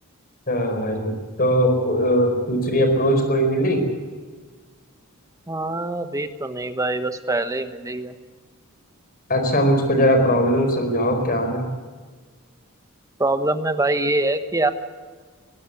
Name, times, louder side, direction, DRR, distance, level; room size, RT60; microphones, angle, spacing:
voice 1, 0.5-3.9 9.3-11.7, equal, 40° left, 6 dB, 4.7 m, -20 dB
voice 2, 5.5-8.1 13.2-14.7, right 2 dB, 15° right, 9 dB, 1.2 m, -24 dB
21.0 x 16.0 x 8.2 m, 1.5 s
head